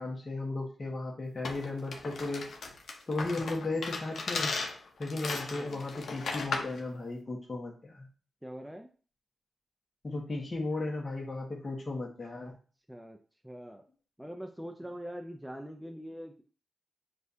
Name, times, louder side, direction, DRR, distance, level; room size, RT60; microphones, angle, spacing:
voice 1, 0.0-2.4 3.1-4.5 5.0-8.1 10.0-12.5, left 2 dB, 40° left, -1 dB, 1.2 m, -35 dB
sound 1, 1.4-6.8, left 4 dB, 75° left, 0.7 m, -36 dB
voice 2, 5.5-5.8 8.4-8.9 12.5-12.6 12.9-13.2 13.4-13.8 14.2-16.4, equal, 5° right, 3 dB, 0.5 m, -43 dB
6.3 x 2.4 x 2.7 m, 0.39 s
cardioid pair, 55°, 0 cm